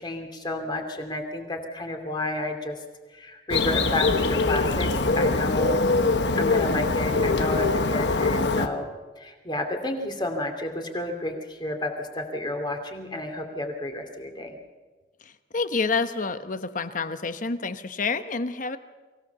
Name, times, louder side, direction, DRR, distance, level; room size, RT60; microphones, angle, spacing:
voice 1, 0.0-2.8 3.1-4.9 5.2-6.0 6.4-8.9 9.2-14.6, left 1 dB, 25° left, 4 dB, 2.5 m, -31 dB
Bird, 3.5-8.7, left 3 dB, 75° left, 1.2 m, -23 dB
voice 2, 15.5-18.8, left 4 dB, 50° left, 11 dB, 1.0 m, -28 dB
24.0 x 16.5 x 6.9 m, 1.3 s
head